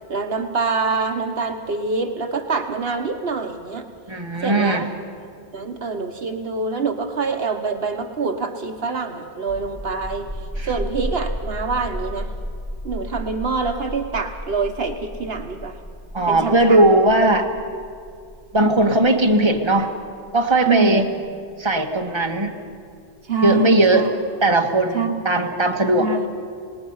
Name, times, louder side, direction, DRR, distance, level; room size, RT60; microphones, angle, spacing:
voice 1, 0.1-3.9 4.4-4.9 5.2-12.3 12.8-15.8 16.3-16.8 18.6-18.8 20.7-21.0 23.2-24.1 24.9-25.2 26.0-26.3, right 4 dB, 65° right, 5 dB, 1.2 m, -25 dB
voice 2, 4.1-4.8 10.6-10.7 16.1-17.5 18.5-19.9 20.3-21.1 21.6-22.5 23.4-24.1 24.4-26.1, right 2 dB, 25° right, 2 dB, 1.5 m, -18 dB
sound 1, 9.4-22.8, equal, 30° left, 6.4 m, -33 dB
28.0 x 19.0 x 5.6 m, 2.3 s
omnidirectional pair, 1.1 m